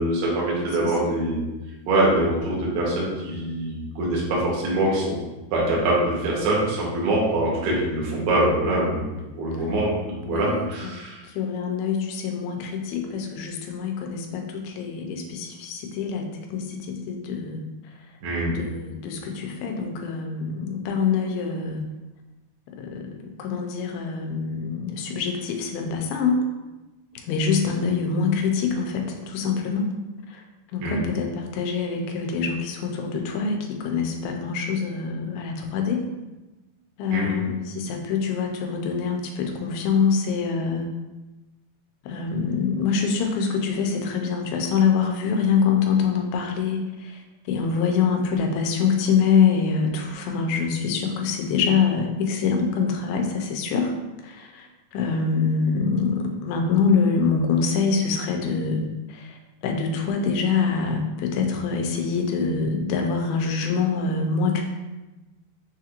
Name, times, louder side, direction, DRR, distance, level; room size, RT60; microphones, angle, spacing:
voice 1, 0.0-1.4 1.9-5.1 5.5-11.2 18.2-18.5 30.8-31.0 37.1-37.3, right 1 dB, 65° right, -4 dB, 1.8 m, -24 dB
voice 2, 10.3-11.0 11.3-17.6 18.5-21.8 22.8-26.4 27.2-29.9 30.3-30.4 30.7-36.0 37.0-40.9 42.0-47.2 47.5-53.9 54.2-58.8 59.1-59.4 59.6-64.6, left 5 dB, 85° left, 3 dB, 2.4 m, -25 dB
6.3 x 2.9 x 2.4 m, 1.1 s
omnidirectional pair, 4.3 m